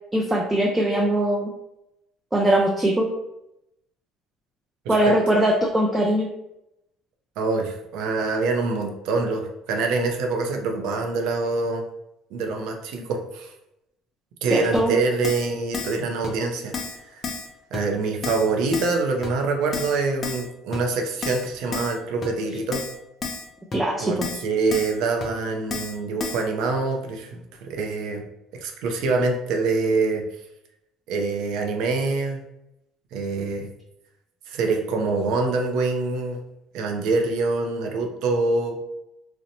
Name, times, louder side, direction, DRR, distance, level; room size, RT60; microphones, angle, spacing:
voice 1, 0.1-1.5 2.3-3.1 4.9-6.3 14.5-14.9 23.7-24.3, right 1 dB, 15° right, 0 dB, 0.4 m, -21 dB
voice 2, 7.4-11.8 12.3-13.5 14.4-16.7 17.1-17.2 17.7-22.8 24.0-28.2 28.6-30.2 31.1-32.4 33.1-33.7 34.5-36.4 36.7-38.8, right 3 dB, 75° right, 3 dB, 0.5 m, -25 dB
Keyboard (musical), 14.7-14.8 15.2-15.5 15.7-16.0 16.2-16.3 16.7-17.0 17.2-17.5 17.7-17.8 18.2-18.5 18.7-19.0 19.2-19.3 19.7-20.0 20.2-20.4 20.7-20.8 21.2-21.4 21.7-22.0 22.2-22.3 22.7-22.9 23.2-23.4 23.7-23.8 24.2-24.4 24.7-24.9 25.2-25.3 25.7-25.9 26.2-26.4, left 4 dB, 35° left, 0.5 m, -31 dB
2.7 x 2.1 x 2.7 m, 0.85 s
supercardioid pair, 90°, 0 cm